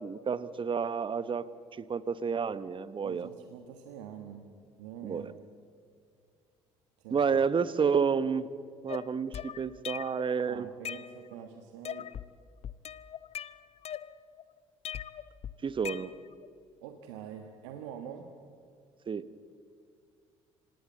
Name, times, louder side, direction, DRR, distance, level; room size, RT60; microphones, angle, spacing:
voice 1, 0.0-3.3 5.0-5.3 7.1-8.5 8.8-10.7 15.6-16.1 19.1-19.2, right 6 dB, 35° right, 16 dB, 1.1 m, -30 dB
voice 2, 3.0-4.5 4.8-5.3 7.0-7.2 10.5-12.1 16.8-18.3, right 9 dB, 75° right, 5 dB, 1.5 m, -45 dB
sound 1, 8.9-10.3 10.6-11.5 11.8-12.3 12.6-14.4 14.8-16.5, left 9 dB, 45° left, 0.8 m, -41 dB
26.0 x 19.0 x 7.8 m, 2.3 s
hypercardioid pair, 55°, 15 cm